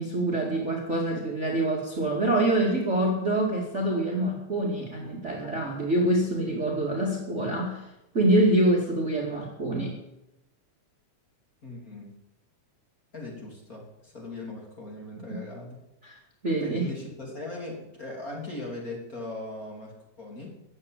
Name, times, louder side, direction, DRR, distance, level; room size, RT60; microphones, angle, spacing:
voice 1, 0.0-7.8 8.1-10.0 15.3-15.4 16.0-16.2 16.4-16.9, right 1 dB, 25° right, -1 dB, 2.3 m, -25 dB
voice 2, 5.4-5.7 11.6-12.1 13.1-15.8 16.6-20.5, left 2 dB, 30° left, -2 dB, 3.4 m, -39 dB
15.0 x 8.6 x 8.9 m, 0.90 s
omnidirectional pair, 3.5 m